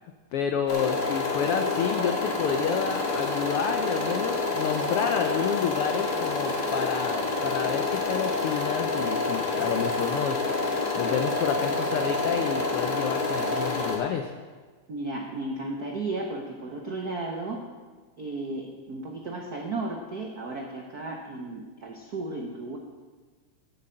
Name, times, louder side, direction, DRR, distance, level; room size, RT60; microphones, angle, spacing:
voice 1, 0.3-10.5 11.0-14.3, left 7 dB, 85° left, 6 dB, 1.2 m, -29 dB
sound 1, 0.7-14.0, left 3 dB, 35° left, 2.2 m, -28 dB
voice 2, 14.9-17.6 18.2-22.8, right 2 dB, 70° right, 1 dB, 0.8 m, -34 dB
11.5 x 7.9 x 7.7 m, 1.5 s
omnidirectional pair, 3.3 m